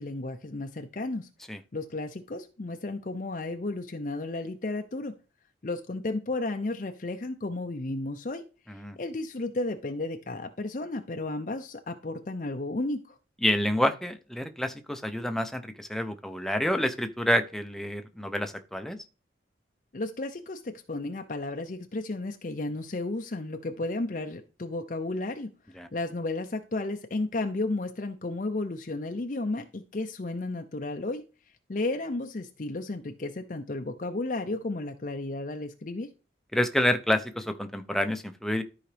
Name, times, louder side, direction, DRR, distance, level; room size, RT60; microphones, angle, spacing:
voice 1, 0.0-1.3 1.7-5.1 5.6-8.4 9.0-13.1 19.9-25.5 25.9-31.2 31.7-36.1, left 2 dB, 45° left, 6 dB, 0.6 m, -33 dB
voice 2, 13.4-19.0 25.8-25.9 36.5-38.6, left 1 dB, ahead, 7 dB, 0.7 m, -28 dB
13.0 x 4.8 x 3.4 m, 0.33 s
head